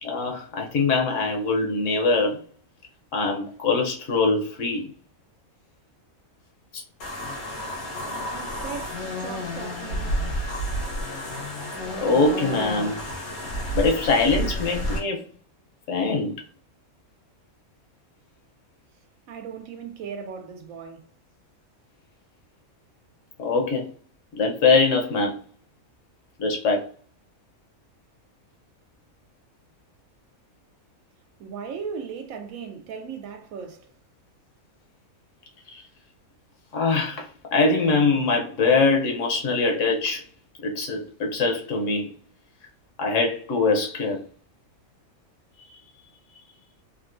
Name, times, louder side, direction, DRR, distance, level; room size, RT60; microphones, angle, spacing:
voice 1, 0.0-2.4 3.1-4.9 6.7-6.8 12.0-13.1 13.7-15.2 15.9-16.3 23.4-23.9 24.3-25.4 26.4-26.8 35.7-35.8 36.7-40.2 40.6-42.1 43.0-44.2 45.7-45.8, left 3 dB, 65° left, 1.0 m, -23 dB
sound 1, 7.0-15.0, equal, 85° left, 1.4 m, -30 dB
voice 2, 8.3-10.2 19.3-21.1 31.4-33.9, right 6 dB, 75° right, 1.0 m, -37 dB
3.7 x 2.3 x 2.4 m
omnidirectional pair, 1.5 m